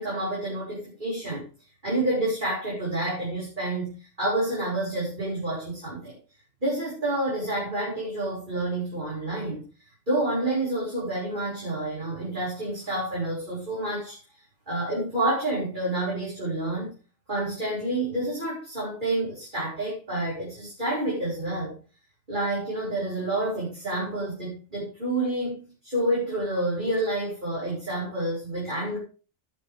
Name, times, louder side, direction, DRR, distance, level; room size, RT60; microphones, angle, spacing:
voice 1, 0.0-1.5 1.8-6.2 6.6-9.6 10.1-14.2 14.7-16.9 17.3-21.7 22.3-29.0, right 1 dB, 45° right, -6 dB, 5.6 m, -29 dB
13.0 x 9.7 x 3.5 m, 0.35 s
omnidirectional pair, 1.2 m